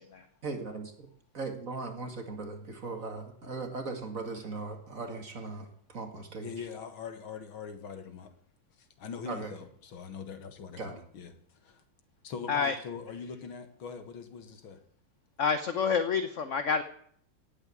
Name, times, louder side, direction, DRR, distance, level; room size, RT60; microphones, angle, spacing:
voice 1, 0.4-0.9 1.3-6.5 9.3-9.5 10.8-11.0, right 3 dB, 40° right, 5 dB, 2.3 m, -38 dB
voice 2, 6.4-8.3 8.8-11.3 11.6-11.8 12.2-14.8, left 6 dB, 70° left, 9 dB, 2.3 m, -42 dB
voice 3, 15.4-16.8, left 5 dB, 50° left, 10 dB, 0.9 m, -27 dB
18.0 x 8.2 x 8.4 m, 0.64 s
omnidirectional pair, 2.3 m